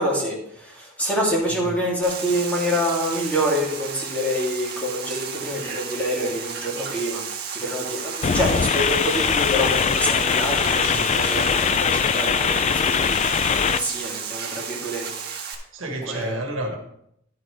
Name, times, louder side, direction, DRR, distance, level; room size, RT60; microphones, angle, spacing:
voice 1, 0.0-7.2 7.5-13.2 13.5-15.0 15.8-16.4, equal, 5° left, -5 dB, 2.8 m, -26 dB
sound 1, 2.0-15.5, right 7 dB, 50° right, 1.5 m, -33 dB
sound 2, 8.2-13.8, left 7 dB, 35° left, 0.3 m, -21 dB
voice 2, 10.6-11.2 15.7-16.8, right 2 dB, 70° right, 2 dB, 1.6 m, -31 dB
11.0 x 8.1 x 3.3 m, 0.74 s
head